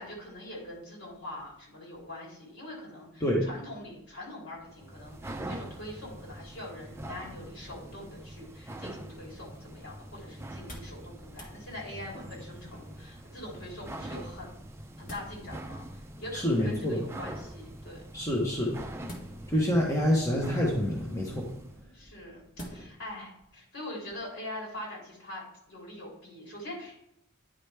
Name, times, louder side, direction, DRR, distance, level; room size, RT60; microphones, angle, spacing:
voice 1, 0.0-14.6 15.0-18.0 21.9-22.4 22.7-27.0, left 1 dB, 65° left, -3 dB, 3.4 m, -43 dB
sound 1, 4.6-21.8, right 1 dB, 10° right, 0.5 m, -44 dB
sound 2, 10.7-11.0 11.3-11.6 12.7-13.2 14.6-15.3 16.5-17.0 19.0-19.7 20.4-20.9 22.6-23.0 23.5-23.6, equal, 40° left, 1.5 m, -46 dB
voice 2, 16.3-17.0 18.1-18.8 19.5-21.5, equal, 15° left, -2 dB, 1.1 m, -27 dB
10.0 x 5.0 x 3.4 m, 0.75 s
head